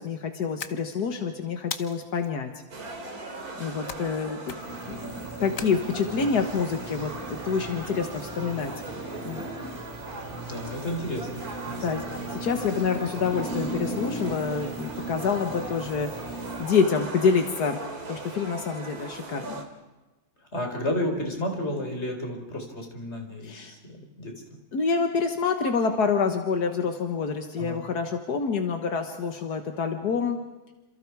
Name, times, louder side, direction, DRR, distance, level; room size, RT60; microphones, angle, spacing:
voice 1, 0.0-2.5 3.6-4.4 4.9-8.7 9.3-9.4 11.8-12.0 12.3-17.8 18.1-19.6 23.4-23.7 24.7-30.4, left 5 dB, 85° left, 5 dB, 2.0 m, -27 dB
sound 1, 0.6-1.2 1.7-2.3 3.9-4.2 4.4-4.9 5.6-6.3, left 7 dB, 60° left, 1.5 m, -38 dB
sound 2, 2.7-19.6, right 3 dB, 75° right, 3.2 m, -39 dB
sound 3, 4.6-16.6, right 1 dB, 15° left, 7.6 m, -38 dB
voice 2, 10.3-12.2 20.5-24.4 27.6-27.8, left 1 dB, 45° left, 3 dB, 4.7 m, -32 dB
28.5 x 27.5 x 4.8 m, 1.1 s
omnidirectional pair, 1.6 m